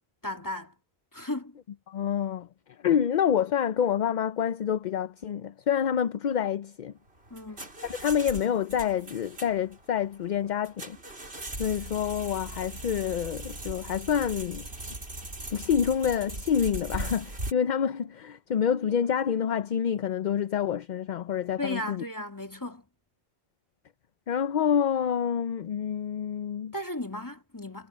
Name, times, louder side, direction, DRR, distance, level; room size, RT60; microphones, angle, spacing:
voice 1, 0.2-0.8 1.1-1.6 7.3-7.7 21.6-22.9 26.7-27.9, left 1 dB, 15° left, 2.7 m, -35 dB
voice 2, 1.9-2.5 2.8-6.9 7.8-11.0 11.6-14.7 15.5-22.0 24.3-26.7, left 8 dB, 55° left, 0.6 m, -27 dB
sound 1, 7.1-17.5, right 2 dB, 70° right, 4.3 m, -39 dB
omnidirectional pair, 1.1 m